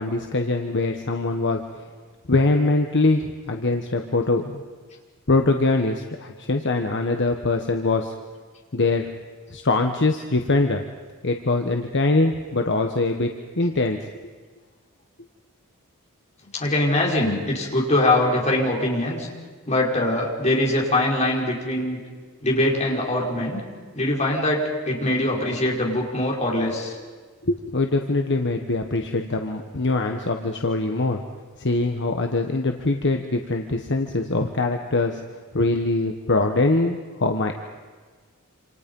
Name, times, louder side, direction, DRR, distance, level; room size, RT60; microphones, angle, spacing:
voice 1, 0.0-1.6 2.3-4.6 5.3-8.1 8.7-9.1 9.5-10.8 11.2-13.3 13.6-14.0 27.4-31.2 31.6-37.5, left 2 dB, 55° left, 4 dB, 1.3 m, -23 dB
voice 2, 16.5-19.3 19.7-22.0 22.4-23.6 23.9-27.0, left 1 dB, 30° left, -1 dB, 4.9 m, -22 dB
27.5 x 27.5 x 5.5 m, 1.5 s
head